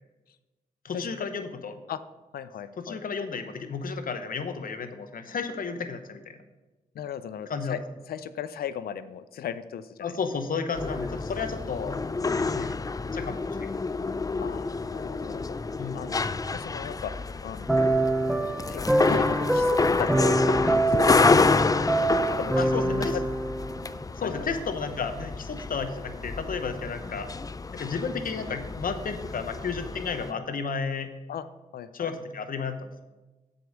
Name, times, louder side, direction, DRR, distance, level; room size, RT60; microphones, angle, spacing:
voice 1, 0.8-1.8 2.8-6.4 7.5-7.8 10.0-12.0 12.3-12.7 13.1-13.7 15.8-16.0 22.6-23.2 24.1-27.3 27.7-31.1 31.9-32.9, left 5 dB, 70° left, 8 dB, 0.9 m, -32 dB
voice 2, 2.3-3.0 6.9-7.8 8.1-10.2 14.4-15.6 15.9-16.2 16.5-17.1 17.4-17.9 18.7-18.8 19.1-21.3 22.0-23.2 24.2-24.5 31.3-31.5 31.7-32.1, left 9 dB, 90° left, 13 dB, 0.5 m, -37 dB
sound 1, 10.7-30.3, left 4 dB, 25° left, 0.4 m, -29 dB
sound 2, 17.7-24.0, right 1 dB, ahead, 0.7 m, -25 dB
7.8 x 5.3 x 6.3 m, 1.1 s
cardioid pair, 55°, 15 cm